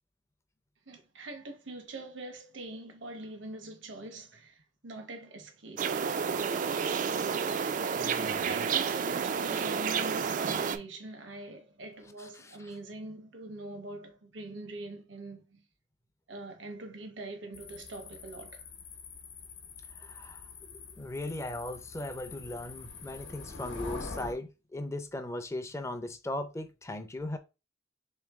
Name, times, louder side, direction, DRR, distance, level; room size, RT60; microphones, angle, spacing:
voice 1, 0.9-6.0 8.1-15.6 16.3-18.7, right 2 dB, 75° right, 0.9 m, -43 dB
sound 1, 5.8-10.8, right 6 dB, 45° right, 0.3 m, -30 dB
voice 2, 8.0-8.5 9.1-9.2 12.2-12.7 20.0-27.4, left 1 dB, 15° left, 0.5 m, -38 dB
sound 2, 17.5-24.3, left 4 dB, 80° left, 0.9 m, -45 dB
3.5 x 3.2 x 3.5 m
head